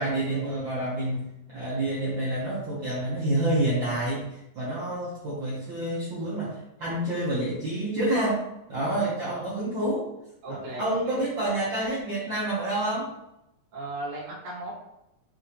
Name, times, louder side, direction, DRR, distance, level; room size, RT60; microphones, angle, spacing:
voice 1, 0.0-10.1 10.5-13.1, right 1 dB, 90° right, -8 dB, 1.0 m, -28 dB
voice 2, 10.4-11.2 13.7-14.7, right 2 dB, 50° right, -8 dB, 2.0 m, -36 dB
5.6 x 2.5 x 2.8 m, 0.86 s
omnidirectional pair, 3.6 m